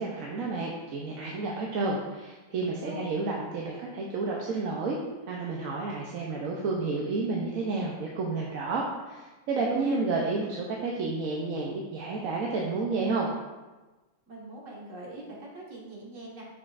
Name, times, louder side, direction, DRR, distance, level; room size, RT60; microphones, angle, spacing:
voice 1, 0.0-5.0 5.3-13.3, right 3 dB, 85° right, -2 dB, 1.2 m, -31 dB
voice 2, 9.6-10.0 14.3-16.4, right 1 dB, 70° right, -4 dB, 1.9 m, -43 dB
7.5 x 6.0 x 2.5 m, 1.2 s
omnidirectional pair, 1.4 m